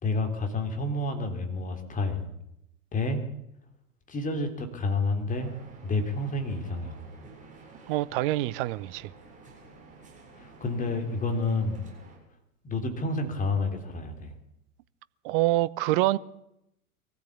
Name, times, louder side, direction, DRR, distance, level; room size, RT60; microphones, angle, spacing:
voice 1, 0.0-2.3 2.9-3.2 4.1-5.5 5.8-7.0 10.4-11.9 12.6-14.3, left 2 dB, 15° left, 3.4 m, -29 dB
sound 1, 5.4-12.2, right 3 dB, 15° right, 7.5 m, -51 dB
voice 2, 7.9-9.1 15.2-16.2, right 17 dB, 35° right, 0.8 m, -26 dB
23.0 x 15.0 x 8.3 m
figure-of-eight pair, 95°, 45 cm